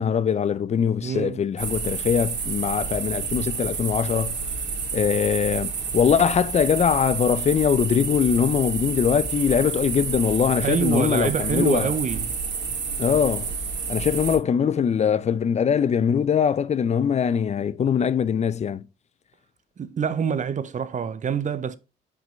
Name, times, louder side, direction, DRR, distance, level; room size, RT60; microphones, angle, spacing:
voice 1, 0.0-4.4 4.9-11.9 13.0-13.5 13.9-18.9, left 7 dB, 35° left, 0.4 m, -22 dB
voice 2, 1.0-1.4 10.6-12.3 19.8-21.8, right 7 dB, 40° right, 0.7 m, -26 dB
sound 1, 1.6-14.4, right 5 dB, 60° right, 2.3 m, -29 dB
6.1 x 5.1 x 3.1 m
cardioid pair, 90°, 20 cm